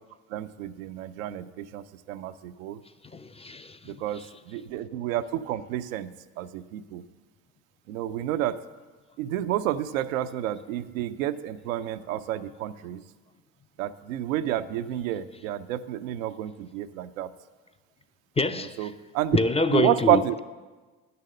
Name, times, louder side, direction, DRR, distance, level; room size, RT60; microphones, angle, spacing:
voice 1, 0.3-2.8 3.8-7.0 7.9-8.6 9.2-13.0 13.8-17.3 18.5-19.4 19.7-20.4, right 12 dB, 85° right, 0.5 m, -30 dB
voice 2, 3.1-3.8 18.4-18.9 19.3-20.4, left 3 dB, 15° left, 0.4 m, -26 dB
10.5 x 6.8 x 6.4 m
hypercardioid pair, 60°, 40 cm